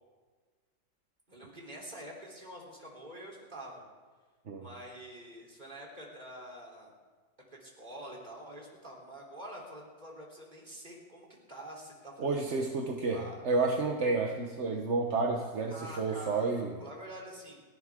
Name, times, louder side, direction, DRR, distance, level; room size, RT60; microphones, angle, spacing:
voice 1, 1.3-3.8 4.6-6.9 7.5-12.6 13.1-13.4 15.7-16.5 16.8-17.6, right 1 dB, 20° right, -2 dB, 3.7 m, -46 dB
voice 2, 12.2-16.7, right 3 dB, 40° right, 1 dB, 1.1 m, -30 dB
29.5 x 12.0 x 3.7 m, 1.4 s
omnidirectional pair, 2.2 m